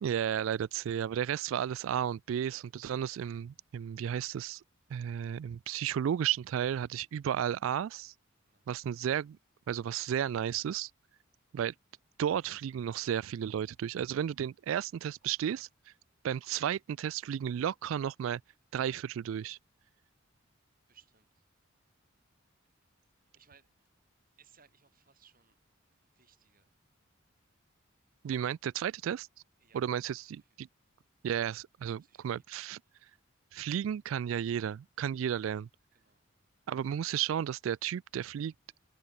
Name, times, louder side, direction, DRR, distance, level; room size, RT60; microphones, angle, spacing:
voice 1, 0.0-4.6 4.9-8.1 8.7-9.4 9.7-10.9 11.5-11.7 12.2-15.7 16.2-18.4 18.7-19.6 28.2-29.3 29.7-30.7 31.2-32.8 33.5-35.7 36.7-38.5, right 9 dB, 75° right, 0.3 m, -33 dB
voice 2, 20.9-21.4 23.3-23.9 24.4-25.6 26.0-26.7 29.6-30.1 30.5-30.6 31.8-32.3 35.9-36.2, right 7 dB, 45° right, 5.1 m, -65 dB
head